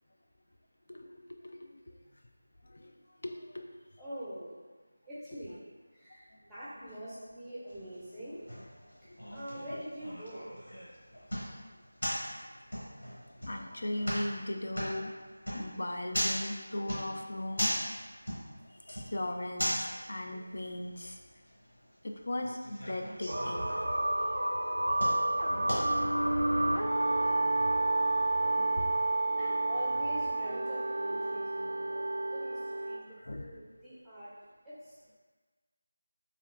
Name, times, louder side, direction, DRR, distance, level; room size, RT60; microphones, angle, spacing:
voice 1, 3.2-3.7 6.8-6.9 11.4-11.5 13.4-15.1 15.5-17.9 18.9-21.2 22.0-23.8 26.6-27.1 28.6-28.8 33.3-33.5, left 1 dB, 60° left, 4 dB, 0.3 m, -38 dB
voice 2, 4.0-4.5 5.0-5.7 5.9-8.4 9.3-10.4 29.4-32.6 32.9-34.3 34.6-35.2, equal, ahead, -12 dB, 0.6 m, -44 dB
sound 1, 7.7-26.3, equal, 90° left, 1.2 m, -39 dB
sound 2, 23.3-33.0, right 2 dB, 75° right, 0.3 m, -30 dB
3.2 x 2.8 x 2.4 m, 1.4 s
figure-of-eight pair, 170°, 0 cm